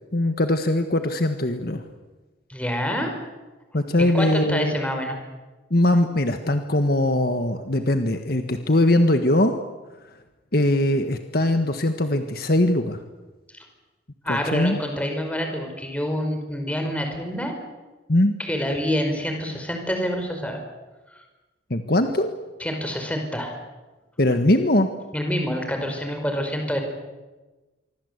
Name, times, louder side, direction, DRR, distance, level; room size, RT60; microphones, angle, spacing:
voice 1, 0.1-1.8 3.7-4.7 5.7-9.6 10.5-13.0 14.3-14.8 18.1-18.3 21.7-22.3 24.2-24.9, left 1 dB, 50° left, 7 dB, 1.6 m, -21 dB
voice 2, 2.5-3.1 4.0-5.2 13.5-13.6 14.2-17.5 18.4-20.6 21.1-21.2 22.6-23.5 25.1-26.8, equal, 5° left, 4 dB, 5.1 m, -27 dB
26.5 x 24.0 x 8.2 m, 1.2 s
head